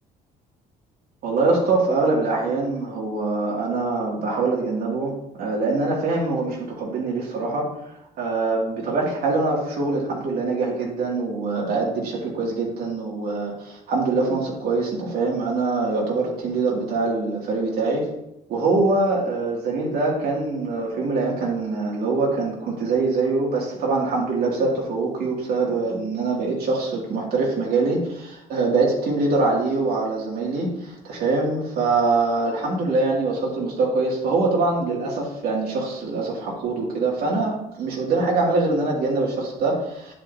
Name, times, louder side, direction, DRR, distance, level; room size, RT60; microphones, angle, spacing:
voice 1, 1.2-18.1 18.5-40.1, right 3 dB, 65° right, -3 dB, 2.6 m, -24 dB
9.5 x 7.7 x 2.8 m, 0.86 s
cardioid pair, 110°, 17 cm